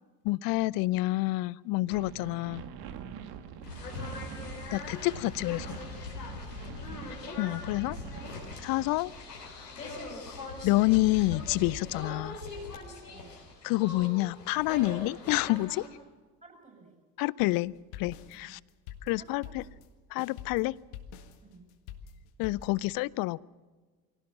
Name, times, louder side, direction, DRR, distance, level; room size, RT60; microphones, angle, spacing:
voice 1, 0.2-2.6 4.7-5.8 7.4-8.0 8.6-9.1 9.4-9.7 10.6-12.4 13.6-15.8 17.2-18.6 19.0-19.6 20.1-20.8 22.4-23.4, left 20 dB, 50° left, 25 dB, 0.6 m, -28 dB
sound 1, 1.9-8.9, right 8 dB, 50° right, 1.9 m, -45 dB
voice 2, 3.0-3.4 6.3-7.3 13.0-13.4 16.4-17.0 18.3-18.6 19.2-19.7 21.4-21.7, right 4 dB, 15° right, 4 dB, 7.6 m, -55 dB
sound 2, 3.6-15.9, left 3 dB, 85° left, 4.0 m, -41 dB
sound 3, 17.7-22.8, left 8 dB, 65° left, 1.8 m, -46 dB
23.5 x 17.0 x 7.2 m, 1.3 s
figure-of-eight pair, 65°, 47 cm